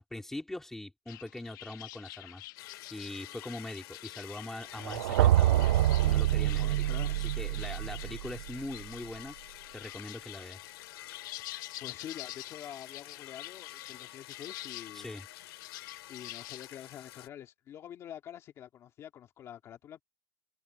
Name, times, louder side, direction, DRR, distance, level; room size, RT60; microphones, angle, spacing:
voice 1, 0.0-2.4 2.9-5.7 6.0-6.7 7.4-9.4 9.7-10.6 14.9-15.3, left 1 dB, 5° left, 3.8 m, -42 dB
sound 1, 1.1-16.7, left 19 dB, 50° left, 1.6 m, -48 dB
sound 2, 2.6-17.3, left 15 dB, 75° left, 2.3 m, -49 dB
sound 3, 4.8-8.8, right 13 dB, 70° right, 0.7 m, -26 dB
voice 2, 6.6-7.3 11.8-15.1 16.1-20.0, left 10 dB, 20° left, 2.0 m, -47 dB
supercardioid pair, 175°, 13 cm